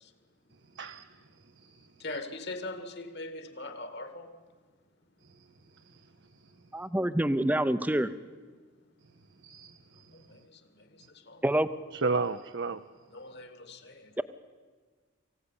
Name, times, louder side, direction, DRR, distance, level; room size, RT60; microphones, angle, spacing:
voice 1, 0.6-2.2 5.2-6.6 9.0-10.4 11.0-11.1 11.9-12.8, right 4 dB, 55° right, 9 dB, 0.7 m, -37 dB
voice 2, 2.0-4.3 11.3-11.4 13.1-13.9, left 2 dB, 50° left, 9 dB, 2.1 m, -40 dB
voice 3, 6.7-8.1 11.4-11.7, right 1 dB, 5° right, 13 dB, 0.7 m, -26 dB
23.5 x 16.5 x 9.9 m, 1.5 s
head